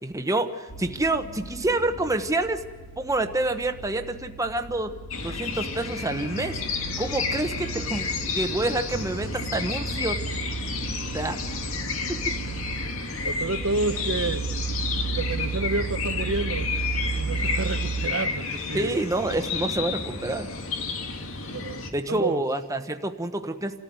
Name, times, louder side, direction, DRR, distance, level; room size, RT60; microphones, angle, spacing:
voice 1, 0.0-2.6 3.0-4.9 5.2-6.6 7.0-10.2 11.1-11.4 12.1-12.3 18.7-20.5 21.9-23.8, right 2 dB, 15° right, 1.1 m, -27 dB
sound 1, 0.7-18.1, right 4 dB, 45° left, 2.6 m, -35 dB
sound 2, 5.1-21.9, left 4 dB, 90° left, 2.2 m, -31 dB
voice 2, 13.3-14.5 15.1-16.7 17.1-19.0 21.5-21.8 22.1-22.4, right 3 dB, 85° right, 1.0 m, -29 dB
28.5 x 14.0 x 9.5 m
head